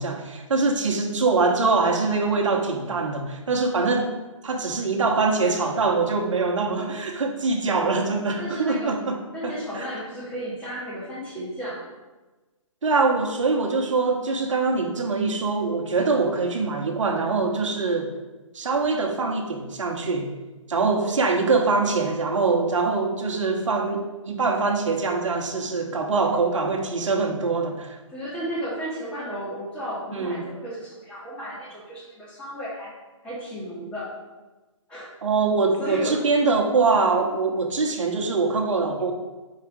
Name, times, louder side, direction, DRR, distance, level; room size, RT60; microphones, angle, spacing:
voice 1, 0.0-4.1 4.4-9.8 12.8-18.1 18.5-20.3 20.7-28.0 30.1-30.4 35.2-39.1, right 4 dB, 70° right, 2 dB, 1.1 m, -23 dB
voice 2, 7.9-8.9 9.3-11.8 21.0-21.1 28.1-32.9 33.2-34.1 34.9-35.1 35.8-36.2, equal, 5° left, -8 dB, 1.7 m, -33 dB
4.8 x 4.2 x 5.0 m, 1.2 s
hypercardioid pair, 150°, 17 cm